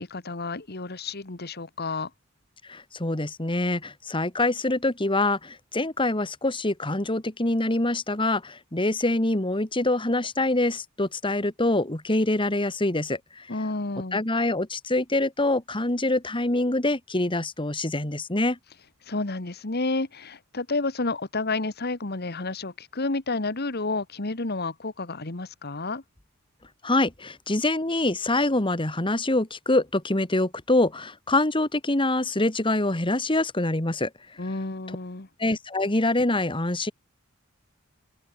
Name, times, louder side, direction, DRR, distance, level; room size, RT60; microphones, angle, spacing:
voice 1, 0.0-2.1 13.5-14.2 19.1-26.0 34.4-35.3, left 3 dB, 50° left, 1.7 m, -30 dB
voice 2, 2.7-13.5 14.1-18.6 26.8-34.1 35.4-36.9, left 2 dB, 25° left, 2.1 m, -25 dB
open air
head